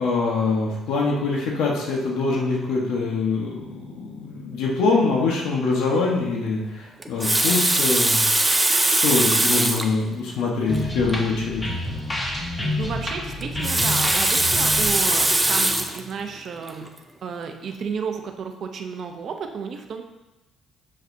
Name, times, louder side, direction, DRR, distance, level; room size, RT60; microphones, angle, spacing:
voice 1, 0.0-8.2 8.9-11.6, left 3 dB, 85° left, -2 dB, 1.2 m, -24 dB
Water tap faucet, 7.0-9.9 10.7-10.8 11.1-11.2 13.4-16.0 16.7-16.9, right 2 dB, 10° right, 0.4 m, -21 dB
sound 1, 10.7-16.3, left 1 dB, 15° left, 0.9 m, -29 dB
voice 2, 12.8-16.9 17.2-20.0, right 6 dB, 45° right, 5 dB, 0.7 m, -32 dB
7.6 x 6.5 x 2.7 m, 1.0 s
cardioid pair, 165°, 0 cm